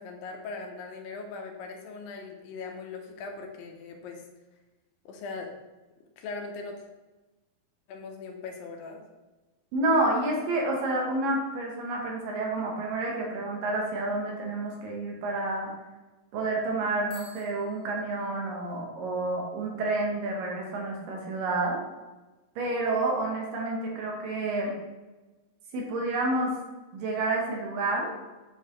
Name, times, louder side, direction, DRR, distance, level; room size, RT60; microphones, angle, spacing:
voice 1, 0.0-4.2 5.1-5.5 6.2-6.8 7.9-9.0, left 4 dB, 80° left, 3 dB, 2.4 m, -40 dB
voice 2, 9.7-15.7 16.3-21.8 22.6-24.7 25.7-26.5 26.9-28.1, right 2 dB, 75° right, -1 dB, 2.8 m, -29 dB
Bicycle bell, 17.0-18.8, equal, 40° left, 2.1 m, -52 dB
7.6 x 4.6 x 3.1 m, 1.1 s
omnidirectional pair, 4.1 m